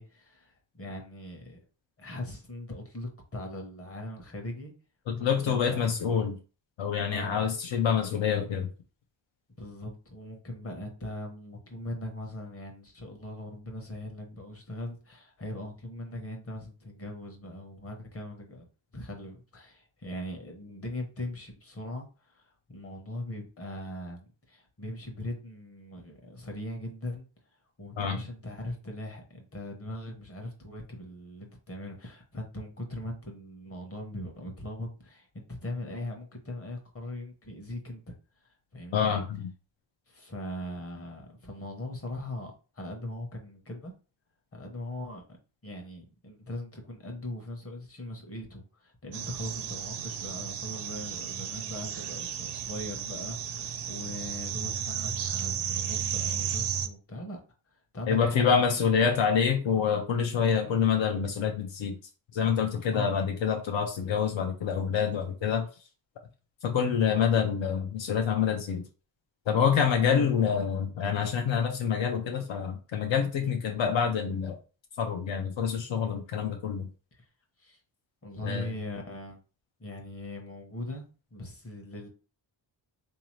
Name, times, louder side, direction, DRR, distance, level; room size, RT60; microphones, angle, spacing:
voice 1, 0.0-1.6 2.0-4.7 5.1-6.0 7.1-7.5 9.6-18.7 18.9-27.3 27.8-39.1 40.1-43.9 44.5-45.4 45.6-57.4 57.7-58.7 59.0-59.1 62.9-63.2 66.9-67.1 70.0-70.4 73.4-73.6 77.1-77.3 77.6-77.8 78.2-79.4 79.8-82.1, left 1 dB, 30° left, 3 dB, 0.8 m, -40 dB
voice 2, 5.1-6.4 6.8-8.7 28.0-28.2 38.9-39.5 58.1-62.0 62.3-65.7 66.6-68.8 69.5-74.6 75.0-76.9 78.4-78.7, left 7 dB, 75° left, 4 dB, 0.6 m, -27 dB
sound 1, 49.1-56.9, right 8 dB, 60° right, 0.5 m, -34 dB
3.8 x 2.7 x 3.1 m, 0.35 s
wide cardioid pair, 175°, 46 cm